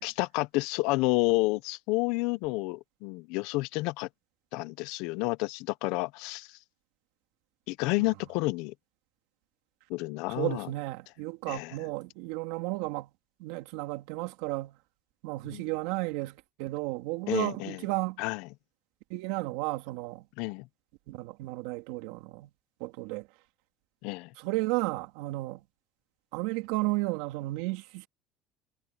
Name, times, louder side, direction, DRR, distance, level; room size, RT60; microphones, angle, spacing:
voice 1, 0.0-4.1 4.5-6.5 7.7-8.7 9.9-10.7 11.5-11.7 15.4-15.6 17.3-17.8 18.2-18.5 20.4-20.7 24.0-24.3, left 23 dB, 75° left, 0.7 m, -30 dB
voice 2, 10.3-13.1 13.4-14.8 15.2-18.2 19.1-20.3 21.1-22.5 22.8-23.3 24.4-25.6 26.3-28.1, right 21 dB, 85° right, 3.1 m, -33 dB
cardioid pair, 115°, 0 cm